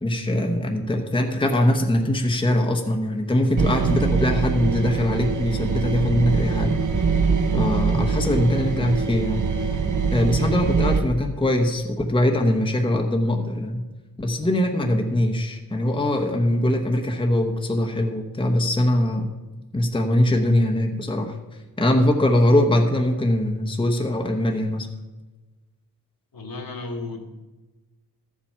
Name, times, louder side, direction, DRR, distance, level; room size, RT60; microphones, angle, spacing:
voice 1, 0.0-7.1 7.5-9.7 10.1-13.8 14.2-19.2 19.7-21.4 21.8-24.9, left 1 dB, 15° left, 2 dB, 0.9 m, -22 dB
sound 1, 3.6-11.0, right 5 dB, 50° right, 0.9 m, -23 dB
voice 2, 26.3-27.2, left 3 dB, 65° left, 3 dB, 1.8 m, -33 dB
13.0 x 7.3 x 5.6 m, 1.2 s
wide cardioid pair, 135°, 38 cm